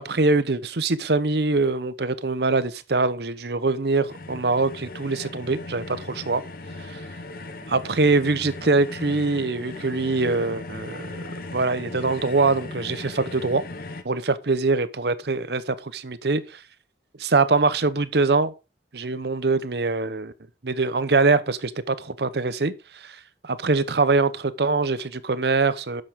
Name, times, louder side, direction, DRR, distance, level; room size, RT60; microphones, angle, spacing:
voice 1, 0.0-6.4 6.9-7.0 7.7-11.2 11.5-13.6 14.0-16.4 17.2-18.5 18.9-20.3 20.6-23.2 23.4-26.0, right 3 dB, 65° right, 0.8 m, -23 dB
sound 1, 4.1-14.0, left 2 dB, 55° left, 1.0 m, -38 dB
10.5 x 7.6 x 3.6 m
head